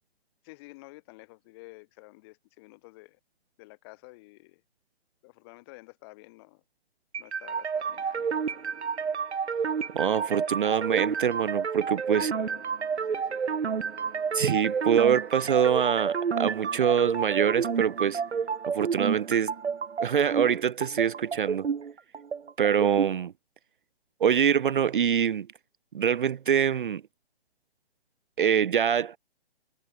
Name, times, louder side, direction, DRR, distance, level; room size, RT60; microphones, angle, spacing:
voice 1, 0.4-3.2 3.6-4.6 5.2-6.6 7.2-8.7 12.1-12.7 13.0-13.5, left 23 dB, 25° left, 6.7 m, -50 dB
sound 1, 7.1-23.1, right 6 dB, 90° right, 2.0 m, -30 dB
voice 2, 9.9-12.3 14.3-18.2 18.7-19.5 20.0-21.7 22.6-23.3 24.2-25.5 25.9-27.0 28.4-29.2, right 8 dB, 50° right, 0.6 m, -25 dB
hypercardioid pair, 165°, 32 cm